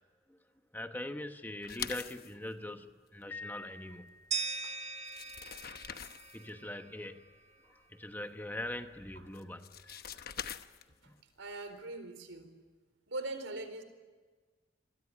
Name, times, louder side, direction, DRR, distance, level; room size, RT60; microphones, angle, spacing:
voice 1, 0.7-4.2 6.3-7.3 7.6-10.2 11.1-11.2, left 1 dB, 10° left, 7 dB, 1.1 m, -42 dB
sound 1, 1.6-2.3 4.6-4.7 5.0-6.5 9.3-11.1, left 8 dB, 50° left, 1.0 m, -43 dB
Piano, 3.3-4.8, left 3 dB, 80° left, 0.9 m, -48 dB
sound 2, 4.3-7.2, right 4 dB, 35° right, 1.4 m, -40 dB
voice 2, 11.4-12.5 13.1-13.8, right 2 dB, 75° right, 9 dB, 4.4 m, -41 dB
27.0 x 22.0 x 9.9 m, 1.4 s
head